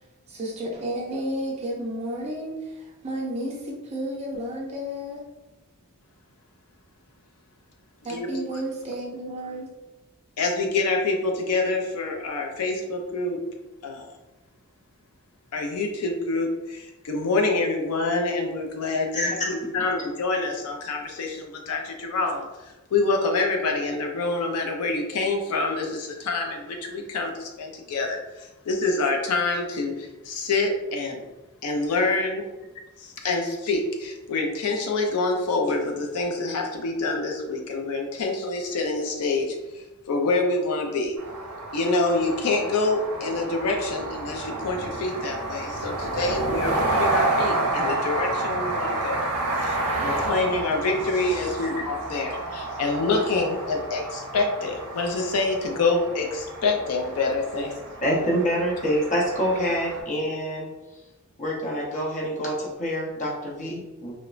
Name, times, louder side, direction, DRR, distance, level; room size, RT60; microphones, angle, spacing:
voice 1, 0.3-5.2 8.0-9.7, right 1 dB, 30° right, -2 dB, 0.5 m, -32 dB
voice 2, 10.4-13.4 13.8-14.1 15.5-31.2 31.6-32.4 33.0-41.2 41.7-49.3 49.6-57.7, left 3 dB, 80° left, 2 dB, 0.4 m, -26 dB
voice 3, 19.1-19.5 51.6-51.7 57.5-57.6 58.0-60.7 61.4-64.1, equal, 35° left, -3 dB, 0.7 m, -26 dB
sound 1, 41.2-60.0, right 2 dB, 90° right, 0.5 m, -30 dB
3.0 x 2.0 x 2.4 m, 1.1 s
head